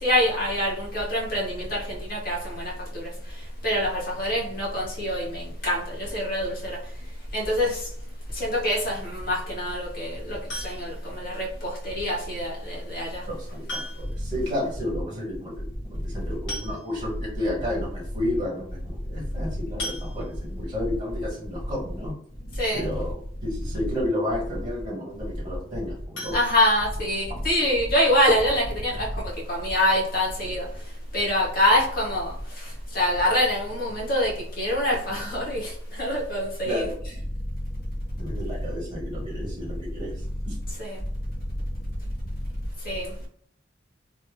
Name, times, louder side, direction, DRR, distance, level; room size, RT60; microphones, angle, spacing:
voice 1, 0.0-2.7 3.6-6.8 7.3-7.8 8.4-10.4 10.6-13.2 22.6-22.8 26.3-29.0 29.5-30.6 31.1-32.3 32.9-34.3 34.6-35.7 36.0-36.9 40.8-41.0 42.8-43.1, left 1 dB, 50° left, -4 dB, 1.4 m, -25 dB
sound 1, 10.5-11.1 12.6-12.7 13.7-14.3 14.6-14.7 15.0-15.1 16.1-16.2 16.5-17.2 17.8-17.9 18.2-18.4 19.8-20.6 26.1-27.3 27.7-27.8 28.2-28.3 28.7-28.8, left 1 dB, 70° left, 1.4 m, -37 dB
voice 2, 13.3-22.1 22.7-26.4 36.6-36.9 38.2-40.1 40.5-40.6, left 1 dB, 25° right, -4 dB, 1.3 m, -31 dB
3.2 x 2.6 x 3.0 m, 0.63 s
head